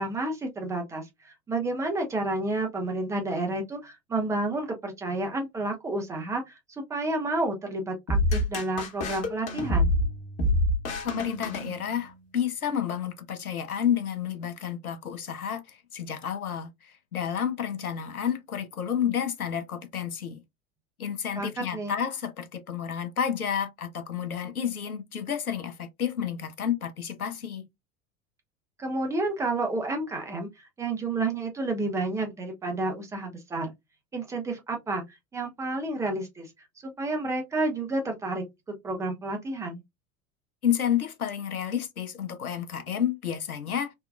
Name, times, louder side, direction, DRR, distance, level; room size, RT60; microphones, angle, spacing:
voice 1, 0.0-9.9 21.4-21.9 28.8-33.7 34.1-36.5 36.8-38.5 38.8-39.8, right 2 dB, 10° right, 0.3 m, -30 dB
sound 1, 8.1-12.2, left 1 dB, 35° left, 1.0 m, -27 dB
voice 2, 11.0-20.4 21.0-27.7 40.6-43.9, left 8 dB, 85° left, 0.5 m, -30 dB
3.3 x 2.2 x 2.3 m
figure-of-eight pair, 75°, 42 cm